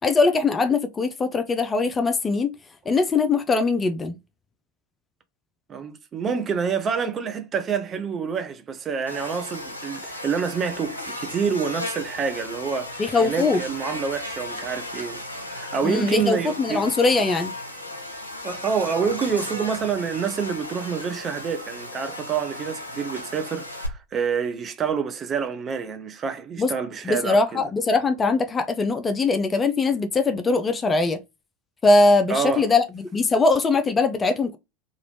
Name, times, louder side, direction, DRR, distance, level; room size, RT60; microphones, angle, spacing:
voice 1, 0.0-2.5 2.9-4.2 13.0-13.6 15.8-17.5 26.6-26.7 27.0-31.2 31.8-34.6, left 3 dB, 20° left, 0.4 m, -21 dB
voice 2, 5.7-16.8 18.4-27.6 32.3-32.7, right 6 dB, 30° right, 0.6 m, -27 dB
Buzz, 9.1-23.9, left 1 dB, 85° left, 0.7 m, -35 dB
3.0 x 2.5 x 3.3 m
figure-of-eight pair, 80°, 0 cm